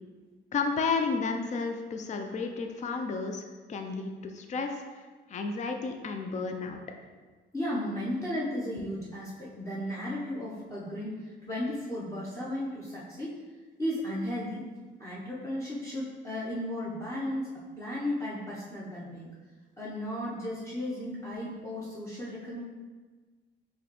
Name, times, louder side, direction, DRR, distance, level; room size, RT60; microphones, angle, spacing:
voice 1, 0.5-3.4 3.7-4.8 5.3-6.8, left 4 dB, 35° left, 5 dB, 0.4 m, -32 dB
voice 2, 7.5-13.3 13.8-14.7 15.0-19.3 19.8-22.6, left 1 dB, 15° left, -8 dB, 0.9 m, -35 dB
4.6 x 3.1 x 3.1 m, 1.3 s
cardioid pair, 90°, 20 cm